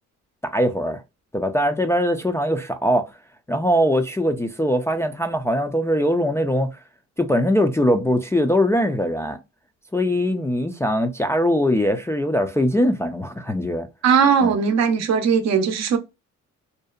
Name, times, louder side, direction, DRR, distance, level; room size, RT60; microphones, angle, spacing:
voice 1, 0.4-1.0 1.3-3.1 3.5-6.8 7.2-9.4 9.9-13.9 14.4-14.5, equal, 10° left, 0.3 m, -21 dB
voice 2, 14.0-16.0, right 6 dB, 60° right, 0.6 m, -18 dB
2.7 x 2.1 x 2.3 m
cardioid pair, 90°, 30 cm